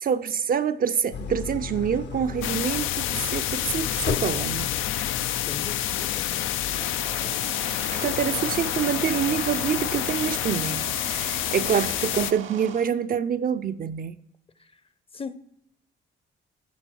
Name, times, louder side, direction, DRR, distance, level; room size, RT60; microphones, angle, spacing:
voice 1, 0.0-4.7 7.9-14.2, right 8 dB, 45° right, 0.5 m, -26 dB
Idling, 1.1-8.2, left 6 dB, 60° left, 0.8 m, -36 dB
sound 1, 2.4-12.3, left 13 dB, 85° left, 0.4 m, -28 dB
voice 2, 5.5-6.5 7.0-7.1 14.6-14.8 15.1-15.3, left 5 dB, 30° left, 0.6 m, -39 dB
sound 2, 6.5-12.9, right 8 dB, 90° right, 1.0 m, -40 dB
11.5 x 6.8 x 4.5 m
cardioid pair, 90°, 20 cm